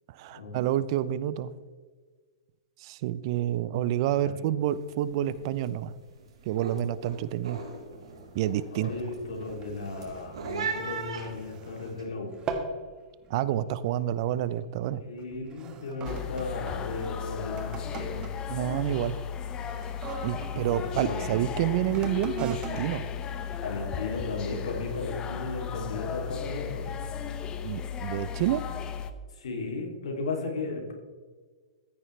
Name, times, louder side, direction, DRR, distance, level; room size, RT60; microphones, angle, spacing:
voice 1, 0.1-1.5 2.8-5.9 6.4-7.6 8.3-8.9 13.3-15.0 18.5-19.2 20.2-23.1 27.6-28.6, right 12 dB, 55° right, 16 dB, 0.6 m, -28 dB
sound 1, 4.7-5.0 5.2-5.7 6.1-12.0, right 5 dB, 80° right, 3.7 m, -39 dB
voice 2, 8.7-12.3 14.9-18.3 20.5-21.4 23.6-27.0 29.3-30.9, left 3 dB, 80° left, 1 dB, 3.0 m, -35 dB
sound 2, 9.4-12.0 12.3-12.8 13.2-13.5 14.2-14.5 15.2-21.0 21.8-24.1 24.7-24.8, right 5 dB, 25° right, 1.5 m, -41 dB
sound 3, 16.0-29.1, left 8 dB, 25° left, 0.8 m, -35 dB
14.0 x 9.8 x 3.3 m, 1.5 s
hypercardioid pair, 125°, 3 cm